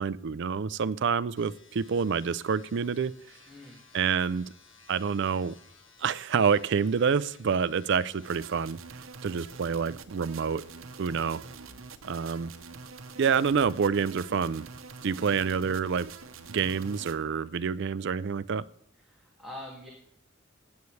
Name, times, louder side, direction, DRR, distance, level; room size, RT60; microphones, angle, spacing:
voice 1, 0.0-3.1 3.9-4.5 4.9-5.5 6.0-8.8 9.2-10.6 11.0-11.4 12.1-12.5 13.2-14.6 15.0-16.1 16.5-18.6, right 6 dB, 60° right, 17 dB, 0.4 m, -27 dB
sound 1, 1.4-8.4, left 5 dB, 70° left, 1.7 m, -58 dB
voice 2, 3.5-3.8 19.0-19.9, left 1 dB, ahead, -4 dB, 2.1 m, -44 dB
sound 2, 8.2-17.2, right 4 dB, 85° right, 0.9 m, -45 dB
16.5 x 9.4 x 3.2 m, 0.70 s
head